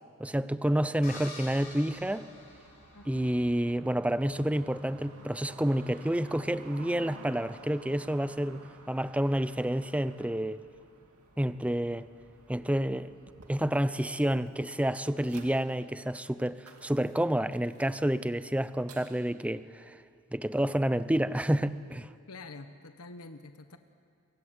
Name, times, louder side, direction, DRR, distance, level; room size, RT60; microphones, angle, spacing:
voice 1, 0.2-2.3 3.1-8.6 8.9-10.6 11.4-12.1 12.5-13.1 13.5-20.0 20.3-22.1, right 1 dB, 5° right, 0.6 m, -29 dB
sound 1, 1.0-3.3, left 3 dB, 40° left, 5.0 m, -47 dB
sound 2, 1.4-19.3, right 2 dB, 80° right, 2.6 m, -53 dB
voice 2, 2.9-3.3 22.3-23.8, left 3 dB, 85° left, 1.2 m, -47 dB
28.0 x 24.5 x 8.2 m
head